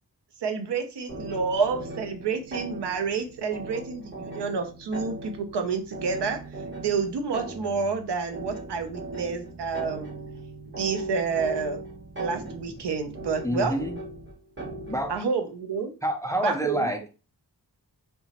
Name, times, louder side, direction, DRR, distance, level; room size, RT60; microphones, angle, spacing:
voice 1, 0.4-6.4 6.8-10.1 10.7-11.8 12.2-13.8 15.1-15.9 16.4-16.9, right 5 dB, 85° right, 7 dB, 0.6 m, -29 dB
sound 1, 1.1-15.2, right 2 dB, 30° right, 0.7 m, -39 dB
voice 2, 13.4-14.0 14.9-15.1 16.0-17.1, equal, 10° left, 4 dB, 0.3 m, -28 dB
2.8 x 2.2 x 2.8 m, 0.33 s
wide cardioid pair, 110°, 40 cm